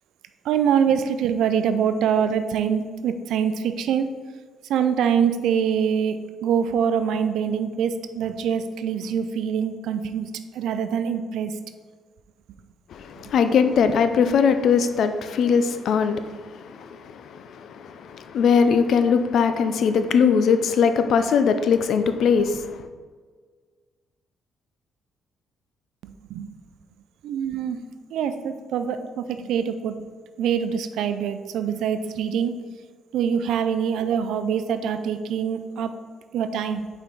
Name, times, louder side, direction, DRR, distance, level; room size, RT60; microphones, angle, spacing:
voice 1, 0.4-4.1 4.7-11.5 26.0-26.5 27.2-27.8 28.1-30.0 30.4-32.6 33.1-35.9 36.3-36.9, right 7 dB, 80° right, 9 dB, 0.4 m, -24 dB
voice 2, 12.9-22.8, left 6 dB, 70° left, 9 dB, 0.5 m, -21 dB
5.5 x 4.6 x 3.9 m, 1.6 s
cardioid pair, 90°, 0 cm